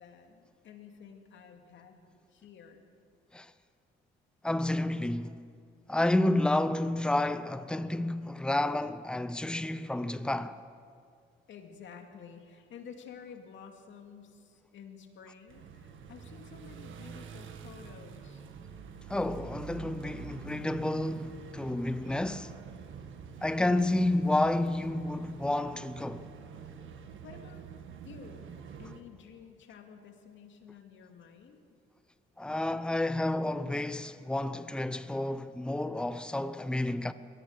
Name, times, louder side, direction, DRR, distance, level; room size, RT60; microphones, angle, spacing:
voice 1, 0.0-2.0 2.3-2.9 11.5-18.8 27.2-27.6 28.0-28.5 28.8-31.6, left 6 dB, 70° left, 2.6 m, -51 dB
voice 2, 4.4-5.4 5.9-10.6 19.1-22.5 23.4-26.3 32.4-37.1, left 1 dB, 5° left, 0.7 m, -30 dB
sound 1, 15.5-29.0, right 6 dB, 75° right, 1.7 m, -46 dB
22.5 x 17.5 x 6.6 m
cardioid pair, 90°, 20 cm